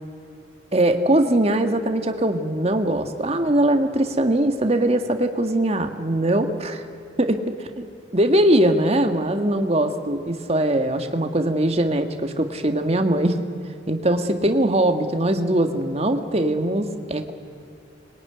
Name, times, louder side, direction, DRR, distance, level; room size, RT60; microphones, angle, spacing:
voice 1, 0.7-6.8 7.2-7.4 7.8-13.4 13.9-17.3, right 1 dB, 35° right, 7 dB, 1.7 m, -21 dB
25.0 x 22.0 x 9.8 m, 2.6 s
head